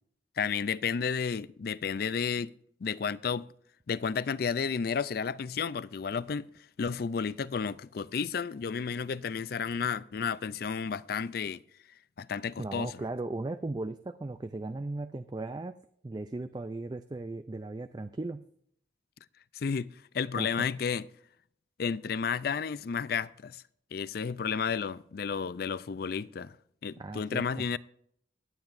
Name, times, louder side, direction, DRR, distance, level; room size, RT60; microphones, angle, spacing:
voice 1, 0.4-2.5 2.8-3.5 3.9-6.5 6.8-11.6 12.2-13.0 19.5-19.9 20.1-21.1 21.8-23.6 23.9-26.6 26.8-27.8, left 6 dB, 55° left, 0.4 m, -32 dB
voice 2, 12.6-15.8 16.0-18.4 20.4-20.7 27.0-27.6, right 2 dB, 20° right, 0.3 m, -37 dB
23.0 x 9.0 x 2.6 m
head